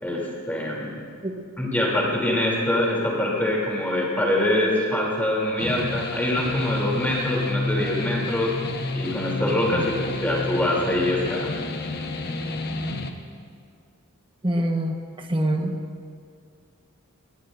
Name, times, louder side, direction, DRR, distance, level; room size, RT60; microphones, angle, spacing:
voice 1, 0.0-0.9 1.6-8.5 8.9-11.6, left 1 dB, 10° left, -4 dB, 3.1 m, -24 dB
sound 1, 5.6-13.1, left 2 dB, 45° left, 1.1 m, -30 dB
voice 2, 14.4-15.8, right 1 dB, 25° right, 3 dB, 1.2 m, -25 dB
24.5 x 20.0 x 2.6 m, 2.2 s
head